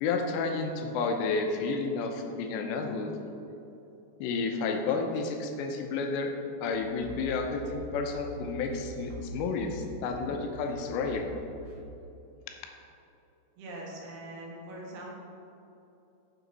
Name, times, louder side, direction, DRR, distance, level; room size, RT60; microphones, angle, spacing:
voice 1, 0.0-3.1 4.2-6.3 6.6-11.3, left 4 dB, 90° left, 4 dB, 3.0 m, -31 dB
sound 1, 6.7-11.8, right 1 dB, 85° right, 3.8 m, -44 dB
voice 2, 13.6-15.1, right 1 dB, 70° right, -3 dB, 3.3 m, -42 dB
9.8 x 7.2 x 4.2 m, 2.9 s
omnidirectional pair, 5.0 m